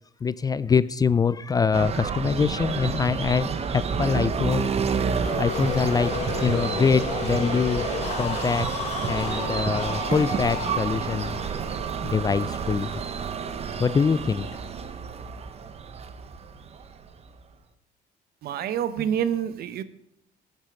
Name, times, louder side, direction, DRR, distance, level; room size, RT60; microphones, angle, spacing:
voice 1, 0.2-4.7 5.0-5.1 5.3-6.1 6.4-7.9 8.2-8.7 9.1-11.4 12.0-12.9 13.8-14.5, left 5 dB, 20° left, 17 dB, 0.3 m, -24 dB
sound 1, 1.7-17.4, right 6 dB, 40° right, 1.0 m, -29 dB
sound 2, 5.2-12.9, left 5 dB, 40° left, 2.8 m, -33 dB
voice 2, 18.4-19.8, right 9 dB, 65° right, 14 dB, 0.9 m, -27 dB
14.5 x 8.2 x 5.1 m, 0.73 s
cardioid pair, 110°, 17 cm